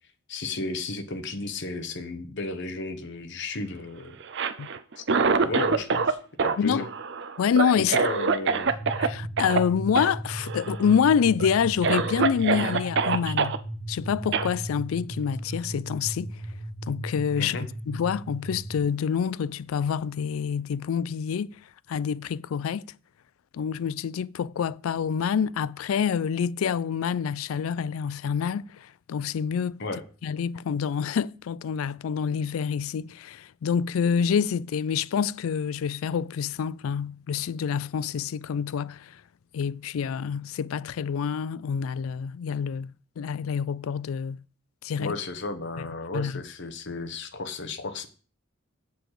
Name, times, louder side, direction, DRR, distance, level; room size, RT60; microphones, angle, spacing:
voice 1, 0.3-4.1 5.0-5.1 5.4-6.9 7.7-8.7 17.4-17.7 29.8-30.0 45.0-48.1, left 2 dB, 60° left, 1.1 m, -33 dB
Cough, 4.2-6.1 6.4-9.1 9.4-9.6 9.9-10.1 10.4-10.9 11.4-11.5 11.8-13.6 14.3-14.5, right 5 dB, 60° right, 0.6 m, -25 dB
voice 2, 7.4-8.0 9.0-13.6 13.9-16.4 16.9-17.6 17.9-21.5 21.9-22.8 23.5-29.8 30.2-39.2 39.5-42.9 43.2-44.4 44.8-45.1 46.1-46.4, left 7 dB, 85° left, 0.4 m, -27 dB
sound 1, 8.7-18.9, right 1 dB, 80° right, 1.6 m, -36 dB
7.6 x 7.1 x 4.8 m
head